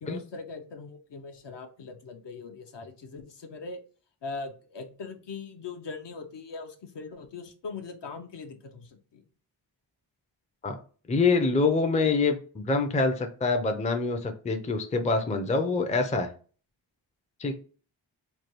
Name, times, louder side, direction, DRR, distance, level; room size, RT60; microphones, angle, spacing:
voice 1, 0.0-3.8 4.2-9.2, left 4 dB, 60° left, 6 dB, 0.6 m, -41 dB
voice 2, 11.1-16.3 17.4-17.5, left 3 dB, 15° left, 6 dB, 0.4 m, -25 dB
3.2 x 2.2 x 2.9 m, 0.40 s
cardioid pair, 50°, 49 cm